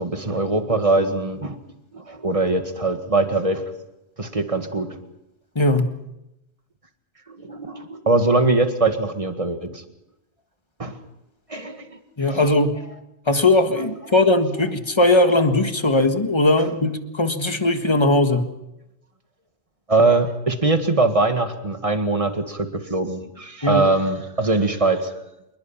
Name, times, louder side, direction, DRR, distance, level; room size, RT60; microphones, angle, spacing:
voice 1, 0.0-1.6 1.9-3.6 4.2-5.0 7.3-9.8 10.8-11.0 11.5-12.0 16.6-16.7 19.9-25.1, right 2 dB, 30° right, 7 dB, 1.9 m, -22 dB
voice 2, 5.5-5.9 12.2-12.7 13.3-18.4 23.6-23.8, left 2 dB, 25° left, 7 dB, 1.6 m, -19 dB
27.0 x 20.5 x 5.8 m, 0.89 s
omnidirectional pair, 1.1 m